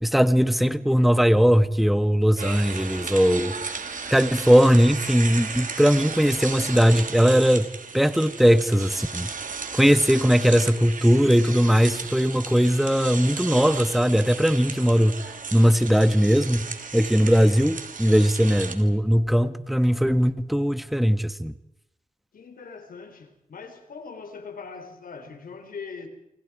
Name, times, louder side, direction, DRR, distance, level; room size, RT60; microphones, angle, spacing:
voice 1, 0.0-3.5 4.1-7.7 7.9-9.3 9.7-15.2 15.5-21.5, equal, ahead, 1.3 m, -19 dB
sound 1, 2.4-18.7, right 5 dB, 70° right, 2.8 m, -35 dB
voice 2, 22.3-26.1, left 5 dB, 85° left, 3.9 m, -41 dB
28.0 x 25.5 x 4.9 m
cardioid pair, 65°, 14 cm